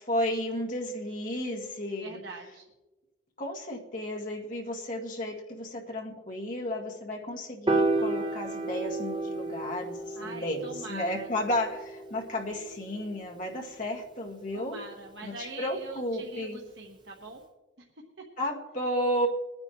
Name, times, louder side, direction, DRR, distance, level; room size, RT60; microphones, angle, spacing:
voice 1, 0.0-2.2 3.4-14.8 15.2-16.6 18.4-19.3, left 1 dB, 45° left, -1 dB, 1.8 m, -33 dB
voice 2, 2.0-2.7 10.1-11.3 14.5-17.4 17.8-17.9 18.2-18.3, right 3 dB, 70° right, 0 dB, 1.2 m, -43 dB
Piano, 7.7-14.0, right 2 dB, 25° right, 0.9 m, -32 dB
22.5 x 9.7 x 3.0 m, 1.2 s
head